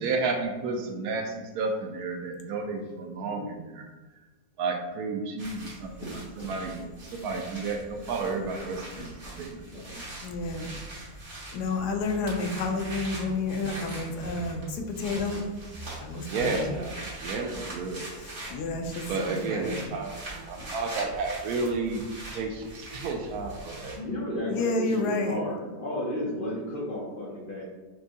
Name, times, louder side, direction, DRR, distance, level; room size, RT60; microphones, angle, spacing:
voice 1, 0.0-3.9 4.6-9.6 9.9-10.0 16.3-16.9 17.2-18.1 19.1-22.0 22.3-24.0, right 3 dB, 75° right, 4 dB, 1.0 m, -32 dB
voice 2, 3.2-3.5 6.0-6.9 8.9-9.0 9.7-10.0 17.4-17.5 22.8-22.9 23.9-27.6, left 1 dB, 50° left, -4 dB, 0.6 m, -34 dB
sound 1, 5.4-24.0, right 2 dB, 45° right, 1.5 m, -42 dB
voice 3, 10.2-10.7 11.5-15.5 16.0-16.8 18.2-20.0 24.5-25.4, left 3 dB, 85° left, 4 dB, 1.1 m, -30 dB
6.0 x 2.2 x 2.7 m, 1.3 s
omnidirectional pair, 1.7 m